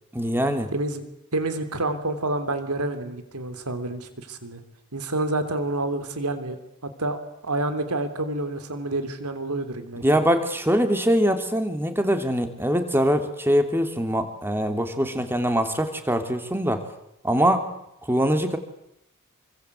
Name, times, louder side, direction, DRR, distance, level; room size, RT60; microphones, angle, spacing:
voice 1, 0.1-0.7 10.0-16.9 17.2-17.7 18.1-18.6, equal, 10° right, 7 dB, 2.9 m, -23 dB
voice 2, 0.7-1.1 1.3-4.6 4.9-6.6 6.8-10.0, right 2 dB, 85° right, 9 dB, 3.4 m, -28 dB
27.5 x 24.5 x 8.3 m, 0.80 s
head